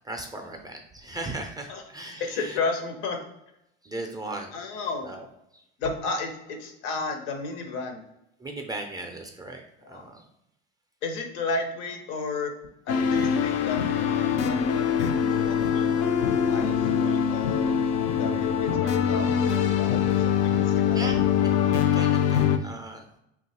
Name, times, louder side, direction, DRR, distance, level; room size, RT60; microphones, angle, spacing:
voice 1, 0.1-2.2 3.8-4.5 5.0-5.2 8.4-9.6 9.9-10.2 20.9-21.5 21.9-23.2, right 2 dB, 10° right, 3 dB, 0.4 m, -37 dB
voice 2, 2.2-3.2 4.5-5.1 5.8-8.0 9.8-10.1 11.0-12.5 12.9-17.8 18.2-21.0, left 4 dB, 75° left, 4 dB, 0.8 m, -33 dB
sound 1, 12.9-22.6, left 8 dB, 50° left, 0.5 m, -23 dB
2.7 x 2.3 x 4.1 m, 0.83 s
supercardioid pair, 95°, 32 cm